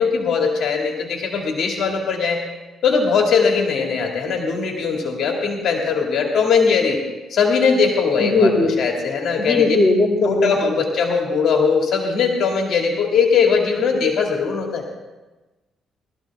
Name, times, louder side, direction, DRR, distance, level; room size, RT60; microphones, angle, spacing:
voice 1, 0.0-2.4 2.8-7.0 7.3-9.8 10.2-14.8, left 5 dB, 65° left, 1 dB, 2.2 m, -20 dB
voice 2, 8.2-8.7 9.4-10.7, left 3 dB, 30° left, -1 dB, 2.4 m, -18 dB
18.5 x 13.5 x 3.5 m, 1.1 s
cardioid pair, 90°, 0 cm